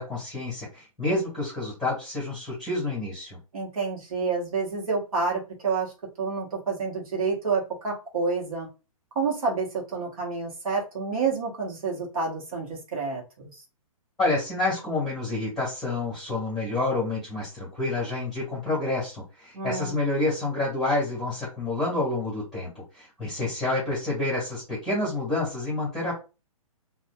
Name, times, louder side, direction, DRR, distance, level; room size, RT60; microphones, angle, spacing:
voice 1, 0.0-3.4 14.2-26.1, left 2 dB, ahead, -8 dB, 1.5 m, -28 dB
voice 2, 3.5-8.7 9.1-13.5 19.5-20.0, right 4 dB, 75° right, -1 dB, 1.1 m, -29 dB
2.6 x 2.4 x 2.2 m, 0.30 s
hypercardioid pair, 150°, 18 cm